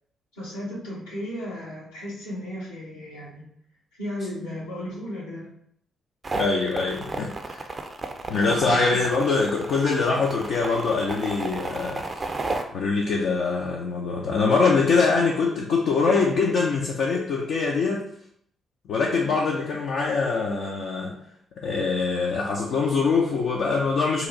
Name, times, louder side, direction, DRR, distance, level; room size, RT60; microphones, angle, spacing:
voice 1, 0.3-3.4 4.0-5.5 8.3-9.0, left 1 dB, 80° left, -7 dB, 1.1 m, -35 dB
sound 1, 6.2-12.6, right 3 dB, 35° right, 0.4 m, -33 dB
voice 2, 6.3-7.7 8.3-12.2 12.7-18.0 18.8-21.2 21.6-24.3, left 4 dB, 65° left, -2 dB, 0.5 m, -23 dB
2.8 x 2.4 x 3.9 m, 0.70 s
figure-of-eight pair, 40°, 0 cm